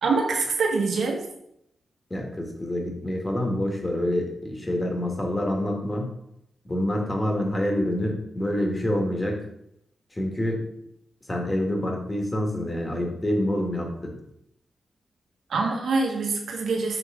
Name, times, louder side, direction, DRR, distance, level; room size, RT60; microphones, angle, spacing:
voice 1, 0.0-1.2 15.5-17.0, right 4 dB, 85° right, 1 dB, 1.2 m, -25 dB
voice 2, 2.1-6.1 6.7-9.4 10.1-10.6 11.3-14.2, left 1 dB, 25° left, 1 dB, 1.7 m, -27 dB
5.7 x 3.7 x 5.0 m, 0.77 s
cardioid pair, 65°, 0 cm